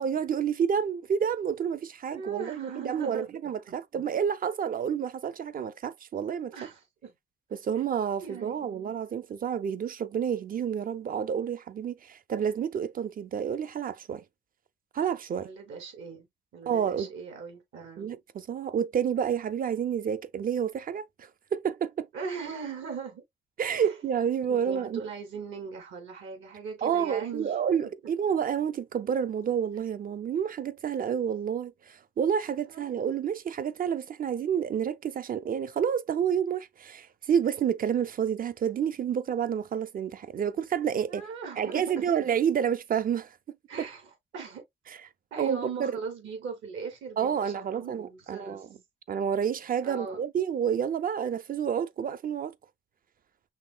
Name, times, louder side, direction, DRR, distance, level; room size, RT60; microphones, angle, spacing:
voice 1, 0.0-6.5 7.5-14.2 14.9-15.5 16.7-17.1 18.0-22.1 23.6-25.0 26.8-41.2 41.6-43.9 44.9-45.0 45.4-46.0 47.2-48.7 49.1-52.5, right 8 dB, 45° right, 0.6 m, -29 dB
voice 2, 2.1-4.0 6.5-7.1 8.2-9.0 15.3-16.3 16.5-18.1 22.1-23.2 23.8-23.9 24.5-27.5 32.7-32.8 41.1-42.3 43.7-44.6 45.3-48.6 49.8-50.2, right 5 dB, 75° right, 2.7 m, -39 dB
5.8 x 3.2 x 2.2 m
cardioid pair, 90°, 20 cm